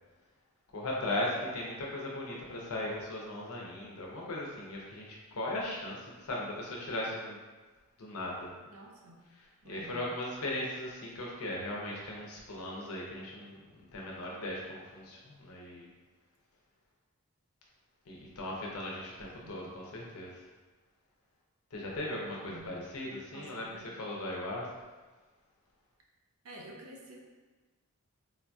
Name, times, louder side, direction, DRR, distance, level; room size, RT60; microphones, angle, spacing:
voice 1, 0.7-7.4 8.0-8.5 9.7-15.9 18.1-20.4 21.7-23.7 24.0-24.7, left 1 dB, 75° left, -3 dB, 0.7 m, -38 dB
voice 2, 8.6-9.3 9.6-10.1 19.0-19.7 22.4-22.8 23.3-23.8 26.4-27.2, right 1 dB, 75° right, 0 dB, 0.6 m, -50 dB
3.7 x 2.6 x 2.3 m, 1.3 s
head